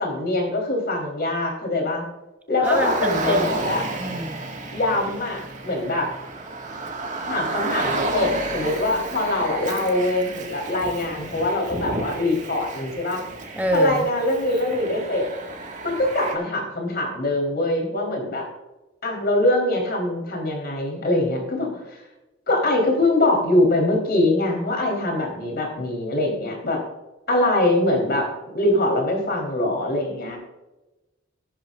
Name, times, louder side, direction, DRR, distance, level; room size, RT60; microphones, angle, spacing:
voice 1, 0.0-2.0 2.5-3.9 4.7-6.1 7.3-13.2 13.7-15.3 15.8-18.5 19.0-22.0 22.5-26.8 27.3-30.4, left 1 dB, 55° left, 1 dB, 3.9 m, -23 dB
voice 2, 2.6-3.5 4.0-4.4 13.6-14.0, equal, 10° right, 4 dB, 0.8 m, -26 dB
Car, 2.6-16.3, right 2 dB, 40° right, 1.9 m, -31 dB
15.5 x 11.5 x 2.6 m, 1.0 s
head